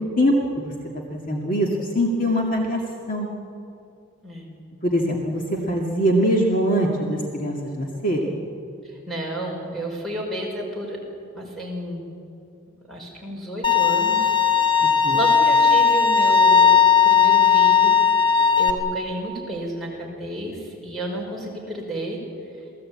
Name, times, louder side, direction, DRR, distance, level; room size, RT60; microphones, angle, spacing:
voice 1, 0.2-0.7 1.1-2.8 3.1-3.3 4.8-8.4 15.0-15.2, equal, 40° left, 0 dB, 2.0 m, -22 dB
voice 2, 9.1-11.0 11.3-12.1 12.9-14.4 15.1-16.8 17.0-18.0 18.6-22.2, right 1 dB, ahead, -2 dB, 5.3 m, -31 dB
Bowed string instrument, 13.6-18.7, left 7 dB, 20° left, 1.7 m, -17 dB
28.0 x 18.0 x 8.6 m, 2.6 s
head